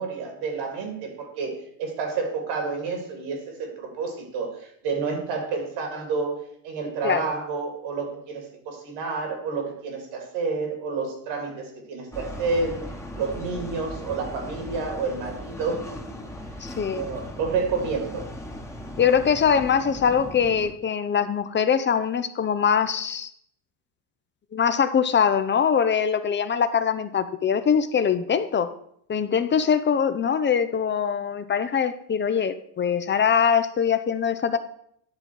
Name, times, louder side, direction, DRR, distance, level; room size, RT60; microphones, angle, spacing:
voice 1, 0.0-12.8 13.1-16.2 16.9-18.3, right 4 dB, 70° right, 3 dB, 2.8 m, -30 dB
sound 1, 12.1-20.7, equal, 5° left, 1.2 m, -38 dB
voice 2, 16.6-17.0 19.0-23.3 24.5-28.7 29.1-34.6, left 7 dB, 25° left, 11 dB, 0.6 m, -22 dB
10.5 x 3.7 x 6.2 m, 0.69 s
supercardioid pair, 85°, 47 cm